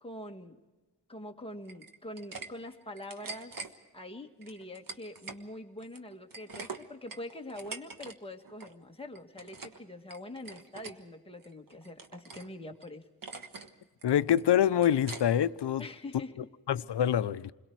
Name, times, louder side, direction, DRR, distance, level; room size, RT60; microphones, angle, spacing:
voice 1, 0.0-0.6 1.1-3.7 3.9-13.0 15.8-16.5, left 1 dB, 15° left, 1.6 m, -44 dB
sound 1, 1.7-2.5 2.8-3.7 4.4-5.4 5.8-8.2 8.4-8.7 9.1-9.8 10.1-11.0 11.4-12.5 12.8-12.9 13.2-13.7 14.0-15.5, right 4 dB, 55° right, 1.5 m, -44 dB
voice 2, 14.0-15.8 16.7-17.5, left 10 dB, 80° left, 0.7 m, -25 dB
28.5 x 22.0 x 4.7 m
wide cardioid pair, 110°, 41 cm